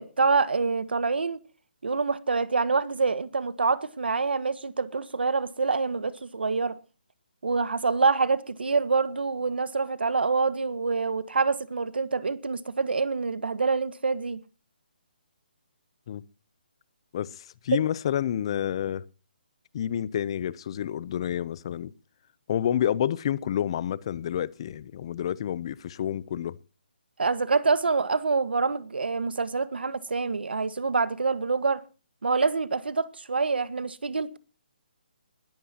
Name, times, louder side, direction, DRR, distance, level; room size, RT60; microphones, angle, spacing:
voice 1, 0.0-1.4 1.8-6.8 7.4-14.4 17.7-17.8 27.2-31.8 32.2-34.4, right 4 dB, 90° right, 1.5 m, -26 dB
voice 2, 17.1-19.0 19.7-21.9 22.5-26.6, left 10 dB, 30° left, 0.6 m, -29 dB
19.5 x 14.0 x 2.9 m
hypercardioid pair, 165°, 5 cm